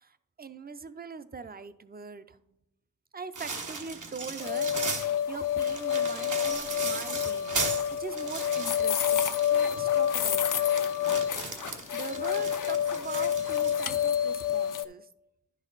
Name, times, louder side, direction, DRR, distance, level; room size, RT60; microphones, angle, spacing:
voice 1, 0.0-2.4 3.1-7.6 7.9-10.7 11.5-15.1, right 5 dB, 30° right, 13 dB, 0.5 m, -42 dB
sound 1, 3.4-5.1 5.6-13.7, right 4 dB, 75° right, 1.2 m, -37 dB
sound 2, 4.4-14.8, left 9 dB, 80° left, 0.5 m, -28 dB
10.5 x 6.3 x 4.0 m, 0.85 s
wide cardioid pair, 70°, 31 cm